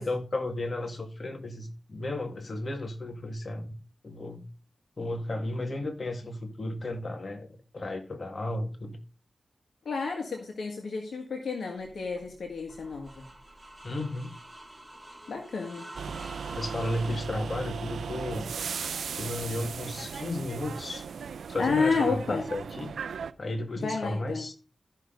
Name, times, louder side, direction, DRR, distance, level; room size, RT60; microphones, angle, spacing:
voice 1, 0.0-3.7 4.0-4.4 5.0-9.0 13.8-14.4 16.5-18.5 19.2-21.0 21.5-22.9 23.4-24.5, left 2 dB, 50° left, 2.0 m, -33 dB
voice 2, 9.8-13.2 15.3-15.9 21.6-22.4 23.8-24.4, left 4 dB, 85° left, 1.6 m, -30 dB
sound 1, 11.8-17.2, right 1 dB, 10° right, 3.4 m, -47 dB
sound 2, 15.9-23.3, right 6 dB, 90° right, 0.4 m, -37 dB
14.0 x 5.9 x 3.9 m
cardioid pair, 50°, 0 cm